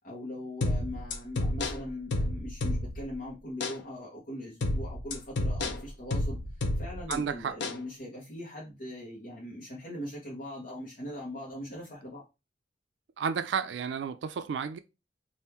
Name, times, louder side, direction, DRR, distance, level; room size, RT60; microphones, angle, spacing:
voice 1, 0.0-6.4 6.8-12.2, left 1 dB, 50° left, 1.1 m, -41 dB
sound 1, 0.6-3.1 3.6-3.8 4.6-7.2 7.6-7.8, left 1 dB, 80° left, 0.6 m, -31 dB
voice 2, 7.1-7.6 13.2-14.8, right 6 dB, 85° right, 0.4 m, -32 dB
3.5 x 2.6 x 4.4 m
head